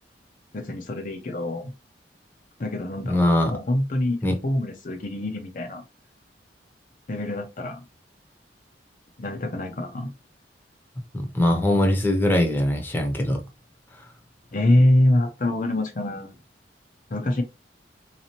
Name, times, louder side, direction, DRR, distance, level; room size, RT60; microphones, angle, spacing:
voice 1, 0.5-1.7 2.6-3.2 3.5-5.8 7.1-7.8 9.2-10.1 14.5-16.3 17.1-17.4, left 1 dB, 45° left, 0.6 m, -24 dB
voice 2, 3.0-3.5 4.2-4.4 11.1-13.4, left 1 dB, 10° left, 0.8 m, -21 dB
3.9 x 2.9 x 2.9 m
head